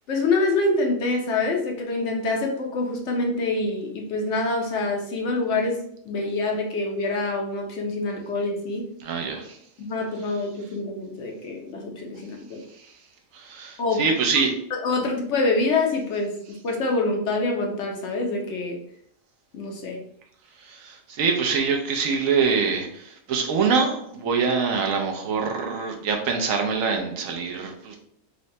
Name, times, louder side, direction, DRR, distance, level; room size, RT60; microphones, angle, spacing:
voice 1, 0.1-8.9 9.8-12.6 13.8-14.0 14.7-18.8 19.5-20.0, left 3 dB, 65° left, 1 dB, 0.9 m, -26 dB
voice 2, 9.0-9.6 13.3-14.5 20.6-28.0, right 5 dB, 75° right, 3 dB, 1.0 m, -24 dB
3.9 x 2.1 x 2.6 m, 0.68 s
omnidirectional pair, 1.4 m